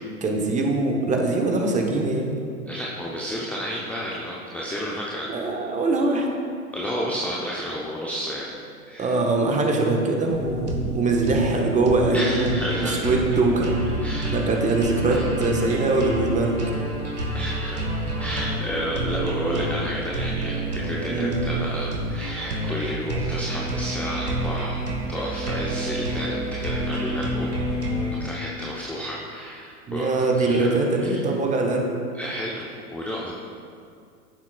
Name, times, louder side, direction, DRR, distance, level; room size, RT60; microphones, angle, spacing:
voice 1, 0.2-2.3 5.3-6.3 9.0-13.7 14.3-16.5 21.1-21.3 29.9-31.9, right 2 dB, 15° right, 1 dB, 1.1 m, -22 dB
voice 2, 2.7-5.3 6.7-8.5 8.9-9.2 12.1-13.1 14.0-14.4 15.1-15.2 17.3-17.8 18.2-27.5 28.2-30.7 31.0-31.3 32.1-33.4, equal, 5° left, -4 dB, 0.6 m, -31 dB
sound 1, 10.3-28.2, right 1 dB, 85° right, 1.6 m, -28 dB
15.0 x 7.1 x 2.3 m, 2.3 s
figure-of-eight pair, 95°, 45 cm